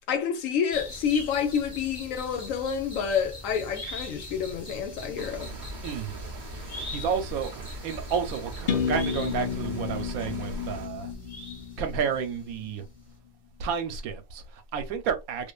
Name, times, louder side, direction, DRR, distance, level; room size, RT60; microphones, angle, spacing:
voice 1, 0.1-5.5, left 7 dB, 70° left, 0.9 m, -28 dB
sound 1, 0.7-12.4 12.6-12.7, left 1 dB, 15° left, 0.9 m, -42 dB
sound 2, 5.2-10.9, right 2 dB, 55° right, 0.5 m, -41 dB
voice 2, 5.8-6.3 6.5-11.1 11.8-12.8 13.6-15.5, right 6 dB, 80° right, 1.1 m, -31 dB
sound 3, 8.7-12.5, left 7 dB, 85° left, 0.4 m, -32 dB
2.5 x 2.5 x 2.2 m
omnidirectional pair, 1.5 m